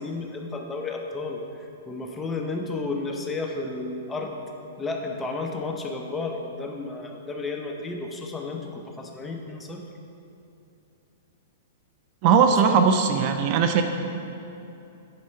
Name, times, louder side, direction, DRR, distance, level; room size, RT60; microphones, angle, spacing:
voice 1, 0.0-4.4 4.8-9.8 12.5-12.8, left 3 dB, 10° left, 2 dB, 0.7 m, -32 dB
voice 2, 12.2-13.8, right 6 dB, 40° right, 6 dB, 0.5 m, -19 dB
9.7 x 4.3 x 5.6 m, 2.8 s
hypercardioid pair, 150°, 0 cm